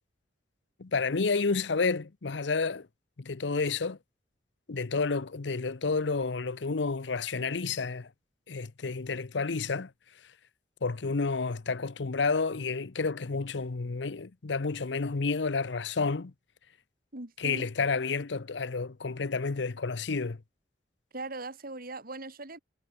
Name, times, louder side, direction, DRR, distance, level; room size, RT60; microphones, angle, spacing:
voice 1, 0.8-2.9 3.2-4.0 4.7-8.1 8.5-9.9 10.8-16.3 17.4-20.4, left 4 dB, 70° left, 0.8 m, -30 dB
voice 2, 17.1-17.7 21.1-22.6, right 2 dB, 55° right, 3.6 m, -40 dB
head